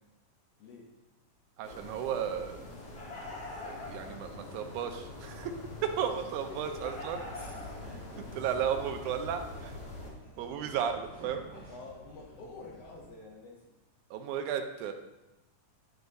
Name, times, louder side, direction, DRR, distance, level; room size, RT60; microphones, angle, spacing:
voice 1, 0.6-0.9 6.5-7.1 7.8-8.3 11.7-13.7, left 3 dB, 70° left, -1 dB, 1.6 m, -48 dB
sound 1, 1.6-10.1, left 2 dB, 50° left, 1.7 m, -44 dB
voice 2, 1.6-2.7 3.6-5.6 5.8-7.2 8.3-9.8 10.4-11.4 14.1-14.9, right 8 dB, 85° right, 6 dB, 2.0 m, -34 dB
sound 2, 7.3-13.1, equal, 5° left, 1.8 m, -51 dB
11.0 x 4.7 x 2.6 m, 0.99 s
omnidirectional pair, 3.5 m